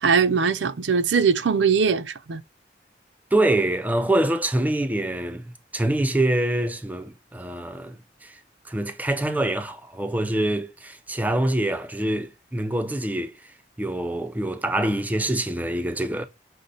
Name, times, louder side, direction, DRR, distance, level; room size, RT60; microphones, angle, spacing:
voice 1, 0.0-2.4, right 6 dB, 85° right, 0.5 m, -21 dB
voice 2, 3.3-8.4 8.7-13.3 13.8-16.3, right 1 dB, 10° right, 0.5 m, -25 dB
6.3 x 2.1 x 3.9 m
head